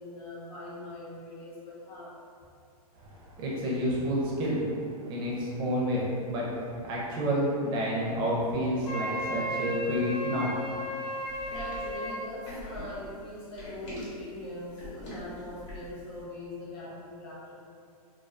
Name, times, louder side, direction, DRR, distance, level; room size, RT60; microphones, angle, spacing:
voice 1, 0.0-2.2 11.5-17.6, left 1 dB, 25° left, -8 dB, 0.5 m, -42 dB
voice 2, 3.0-4.7 5.1-10.5 11.0-11.1, equal, 25° right, -4 dB, 0.4 m, -29 dB
Wind instrument woodwind instrument, 8.8-12.2, equal, 75° left, 0.6 m, -34 dB
sound 1, 11.3-16.0, left 1 dB, 50° left, 1.0 m, -43 dB
2.3 x 2.2 x 2.4 m, 2.3 s
hypercardioid pair, 140°, 20 cm